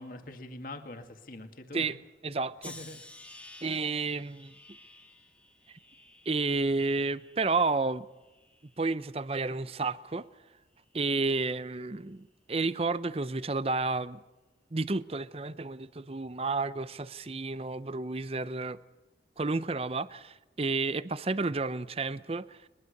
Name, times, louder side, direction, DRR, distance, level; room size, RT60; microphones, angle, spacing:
voice 1, 0.0-1.9 2.7-3.0, left 1 dB, 50° left, 2.1 m, -43 dB
voice 2, 2.2-2.7 3.6-4.5 6.3-8.1 8.8-10.3 10.9-14.2 14.7-18.8 19.4-22.6, right 3 dB, 35° right, 0.6 m, -31 dB
sound 1, 2.6-7.8 8.2-8.9 9.6-9.9, left 2 dB, 10° left, 1.7 m, -52 dB
22.0 x 22.0 x 6.6 m
head